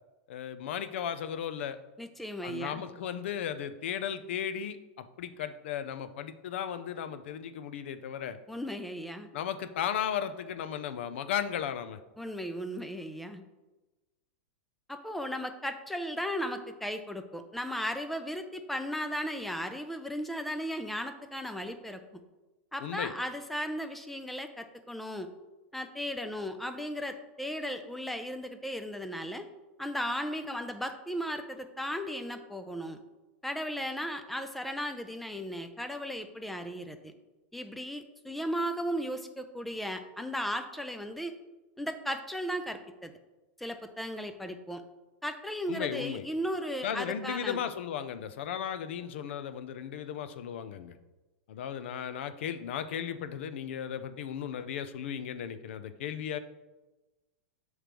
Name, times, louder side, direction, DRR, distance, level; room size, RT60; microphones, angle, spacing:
voice 1, 0.3-1.8 2.4-8.4 9.3-12.0 22.8-23.1 45.7-46.3 46.8-50.9 51.5-56.4, left 9 dB, 70° left, 11 dB, 0.5 m, -35 dB
voice 2, 2.0-2.8 8.5-9.3 12.2-13.4 14.9-22.0 22.7-25.3 25.7-29.5 29.8-33.0 33.4-37.1 37.5-41.4 41.8-43.1 43.6-44.8 45.2-47.6, equal, ahead, 7 dB, 0.4 m, -36 dB
7.4 x 3.2 x 5.1 m, 1.1 s
supercardioid pair, 155°, 7 cm